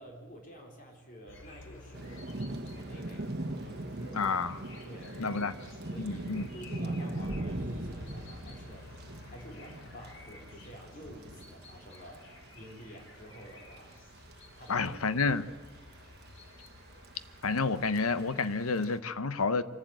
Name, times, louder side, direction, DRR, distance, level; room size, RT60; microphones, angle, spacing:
voice 1, 0.0-2.3 2.7-3.3 3.6-4.4 4.8-5.6 5.9-8.9 9.2-12.2 12.5-13.9 14.6-14.9 15.2-15.4, equal, 40° left, 1 dB, 4.4 m, -50 dB
sound 1, 1.3-18.4, left 2 dB, 60° left, 2.8 m, -52 dB
Thunder / Rain, 1.9-19.0, right 1 dB, 50° right, 1.3 m, -42 dB
voice 2, 4.1-4.6 5.2-5.5 6.0-6.5 14.7-15.5 17.4-19.6, left 4 dB, 90° left, 13 dB, 0.9 m, -29 dB
sound 2, 7.3-10.0, equal, 10° right, 3.0 m, -45 dB
25.0 x 12.0 x 9.0 m, 1.4 s
head